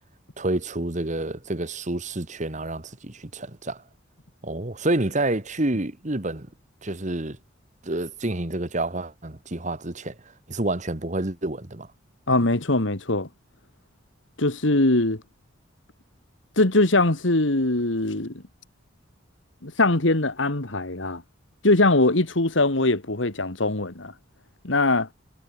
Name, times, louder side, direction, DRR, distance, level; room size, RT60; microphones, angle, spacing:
voice 1, 0.4-3.8 4.4-6.5 6.8-7.4 7.8-10.1 10.5-11.9, right 2 dB, 40° right, 1.6 m, -28 dB
voice 2, 12.3-13.3 14.4-15.2 16.6-18.4 19.6-21.2 21.6-24.1 24.6-25.1, left 2 dB, 75° left, 2.2 m, -21 dB
head